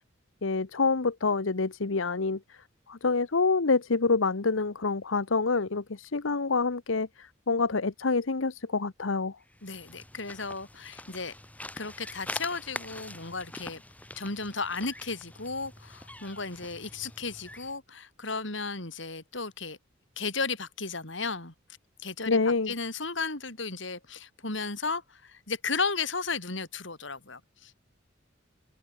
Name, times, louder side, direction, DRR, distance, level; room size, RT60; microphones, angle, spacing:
voice 1, 0.4-2.6 2.9-9.4 22.3-22.7, left 4 dB, 90° left, 1.0 m, -27 dB
sound 1, 9.5-17.8, left 1 dB, 10° left, 3.1 m, -44 dB
voice 2, 9.6-11.3 11.8-13.8 14.2-19.8 20.2-21.5 22.0-22.4 22.7-27.8, left 4 dB, 70° left, 4.6 m, -34 dB
head